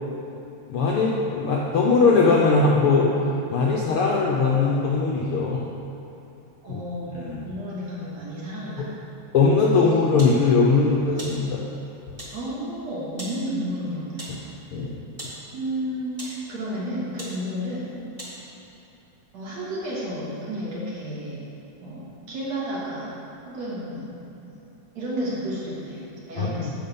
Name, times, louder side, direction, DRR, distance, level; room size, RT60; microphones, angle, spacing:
voice 1, 0.7-3.1 3.5-5.6 6.7-6.8 7.1-7.5 9.3-11.6 14.3-14.4 14.7-14.9 26.4-26.5, left 4 dB, 70° left, -3 dB, 1.3 m, -20 dB
voice 2, 6.6-8.8 12.3-14.4 15.5-17.9 19.3-21.4 21.8-23.1 23.5-24.6 25.0-26.7, equal, 65° right, -7 dB, 3.5 m, -32 dB
sound 1, 10.2-10.4 11.2-11.4 12.2-12.4 13.2-13.4 14.2-14.4 15.2-15.4 16.1-16.4 17.2-17.4 18.2-18.4, right 1 dB, 15° right, 1.4 m, -38 dB
9.7 x 7.6 x 5.4 m, 2.8 s
omnidirectional pair, 3.4 m